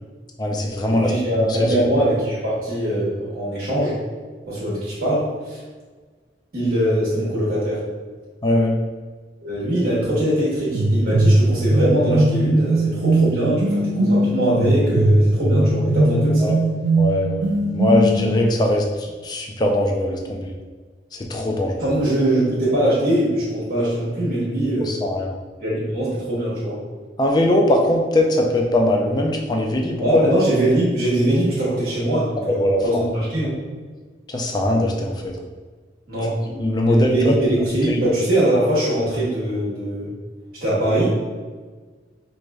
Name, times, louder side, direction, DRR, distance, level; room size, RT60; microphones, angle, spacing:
voice 1, 0.4-1.1 1.5-1.7 8.4-8.8 16.4-16.5 16.9-20.5 21.1-21.7 24.9-25.3 27.2-30.2 32.5-33.0 34.3-35.3 36.6-37.3 37.9-38.0, left 1 dB, 25° left, 1 dB, 0.4 m, -20 dB
voice 2, 0.9-4.0 4.5-5.6 6.5-7.8 9.4-16.5 21.8-24.9 25.6-26.8 30.0-33.6 36.1-36.4 36.8-40.1 40.6-41.1, right 1 dB, 55° right, -8 dB, 1.2 m, -22 dB
sound 1, 10.7-18.4, right 1 dB, 80° right, 0.4 m, -19 dB
4.7 x 2.7 x 2.3 m, 1.4 s
head